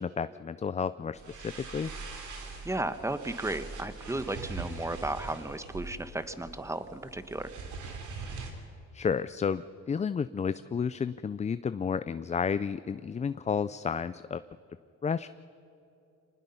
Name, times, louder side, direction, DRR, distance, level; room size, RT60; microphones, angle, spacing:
voice 1, 0.0-1.9 8.9-14.4 15.0-15.3, left 6 dB, 25° left, 15 dB, 0.4 m, -31 dB
sound 1, 1.1-8.5, right 4 dB, 80° right, 3.2 m, -42 dB
voice 2, 2.6-7.5, right 2 dB, 10° right, 11 dB, 1.1 m, -34 dB
25.0 x 19.5 x 5.6 m, 2.8 s
cardioid pair, 90°, 30 cm